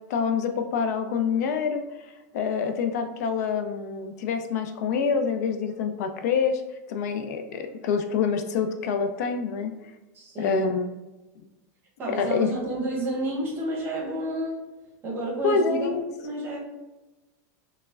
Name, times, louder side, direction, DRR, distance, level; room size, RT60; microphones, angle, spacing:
voice 1, 0.1-1.8 2.3-6.6 6.9-9.7 10.4-10.9 12.1-12.5 15.4-16.0, left 5 dB, 70° left, 6 dB, 0.4 m, -26 dB
voice 2, 10.1-10.7 12.0-14.7 15.0-16.6, right 1 dB, 25° right, -2 dB, 0.8 m, -30 dB
4.6 x 2.1 x 2.3 m, 1.1 s
supercardioid pair, 160°, 9 cm